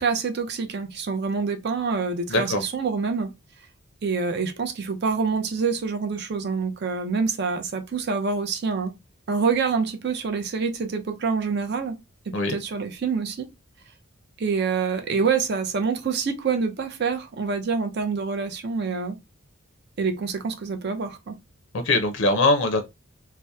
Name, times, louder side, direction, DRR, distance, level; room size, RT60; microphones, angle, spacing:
voice 1, 0.0-3.3 4.0-8.9 9.3-12.0 12.3-13.5 14.4-19.2 20.0-21.4, right 5 dB, 50° right, 0.4 m, -26 dB
voice 2, 2.3-2.6 12.3-12.5 21.8-22.8, left 2 dB, 60° left, 0.4 m, -21 dB
2.7 x 2.0 x 2.2 m
head